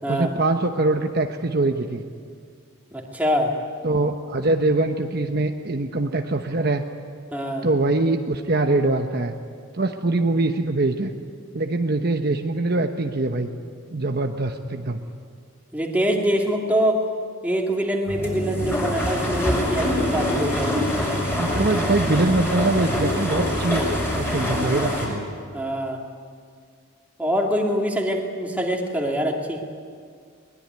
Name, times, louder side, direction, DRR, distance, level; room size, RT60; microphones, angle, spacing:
voice 1, 0.1-2.0 3.8-6.8 7.6-9.3 9.7-11.1 11.5-13.5 13.9-15.0 21.3-23.8 24.1-25.2, right 2 dB, 45° right, 4 dB, 1.0 m, -23 dB
voice 2, 2.9-3.6 7.3-7.7 15.7-17.0 17.4-20.9 25.5-26.0 27.2-29.6, equal, 5° right, 0 dB, 2.6 m, -24 dB
sound 1, 18.1-25.1, left 1 dB, 10° left, 5.8 m, -24 dB
22.0 x 20.5 x 9.6 m, 2.1 s
head